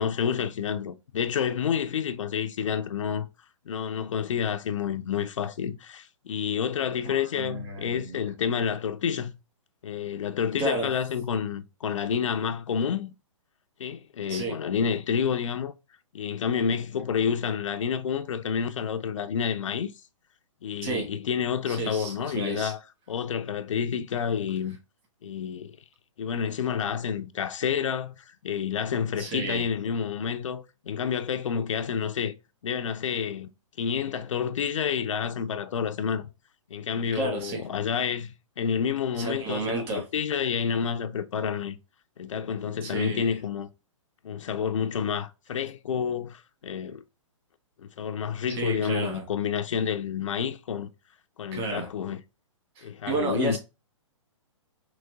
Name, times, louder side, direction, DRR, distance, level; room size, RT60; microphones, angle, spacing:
voice 1, 0.0-3.3 3.7-9.3 9.8-13.1 13.8-15.7 16.1-19.9 20.6-22.8 23.1-24.8 25.2-25.8 26.2-32.3 32.6-33.5 33.8-36.3 36.7-41.8 42.2-43.7 44.2-47.0 47.8-50.9 51.4-52.2 52.8-53.6, left 7 dB, 70° left, 0.5 m, -29 dB
voice 2, 7.0-8.2 10.6-10.9 14.3-14.5 20.8-21.1 21.7-22.7 29.2-29.7 37.1-37.6 39.2-40.0 42.8-43.3 48.5-49.2 51.5-51.9 52.8-53.6, right 3 dB, 30° right, 2.0 m, -32 dB
4.0 x 3.1 x 3.5 m
hypercardioid pair, 130°, 17 cm